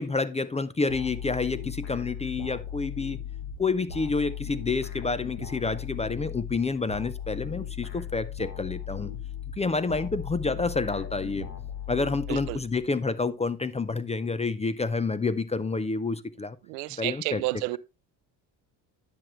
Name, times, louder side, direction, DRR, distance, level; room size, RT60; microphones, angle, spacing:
voice 1, 0.0-3.2 3.6-9.1 9.6-11.5 11.9-16.6 17.0-17.4, left 4 dB, 15° left, 0.4 m, -29 dB
sound 1, 0.9-13.1, left 9 dB, 90° left, 1.7 m, -37 dB
voice 2, 12.3-12.6 16.7-17.8, right 21 dB, 90° right, 0.6 m, -31 dB
10.0 x 6.1 x 3.1 m
supercardioid pair, 75°, 49 cm